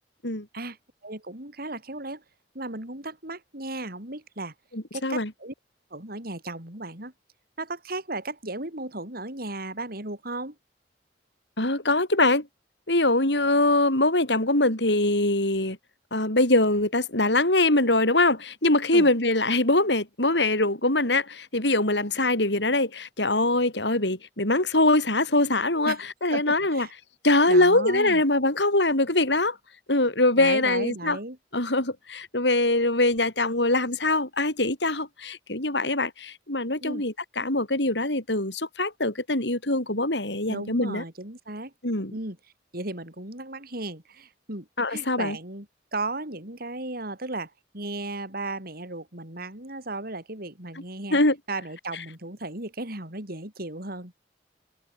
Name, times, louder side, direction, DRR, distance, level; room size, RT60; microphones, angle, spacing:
voice 1, 1.0-2.2 2.5-4.5 4.9-5.5 5.9-7.1 7.6-10.6 18.9-19.1 25.8-26.0 26.3-26.9 27.5-28.2 30.4-31.4 36.8-37.0 40.5-41.7 42.1-42.4 42.7-45.7 45.9-51.2 51.5-54.1, right 2 dB, 55° right, 6.6 m, -35 dB
voice 2, 4.7-5.3 11.6-12.5 12.9-15.8 16.1-26.0 26.2-26.9 27.2-29.6 29.9-31.2 31.5-41.0 41.8-42.1 44.8-45.4 51.1-51.4, left 2 dB, 75° left, 7.4 m, -23 dB
head